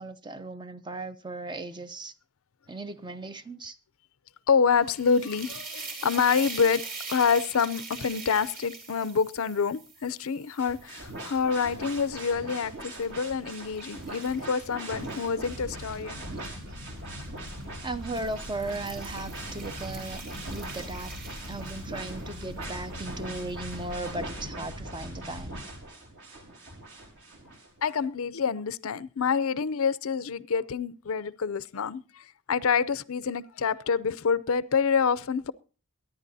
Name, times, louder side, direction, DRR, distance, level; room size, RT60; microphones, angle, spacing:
voice 1, 0.0-2.1 2.7-3.7 17.8-20.2 20.5-21.1 21.4-25.6, right 2 dB, 20° right, 0.6 m, -37 dB
voice 2, 4.5-16.2 27.8-35.5, left 6 dB, 70° left, 0.5 m, -27 dB
sound 1, 4.7-12.0 12.5-16.5 17.4-17.6 18.0-22.2, right 4 dB, 40° right, 3.7 m, -43 dB
sound 2, 10.6-27.9, right 2 dB, 55° right, 3.6 m, -42 dB
sound 3, 15.4-25.6, left 1 dB, 75° right, 4.4 m, -42 dB
23.5 x 10.5 x 2.7 m
head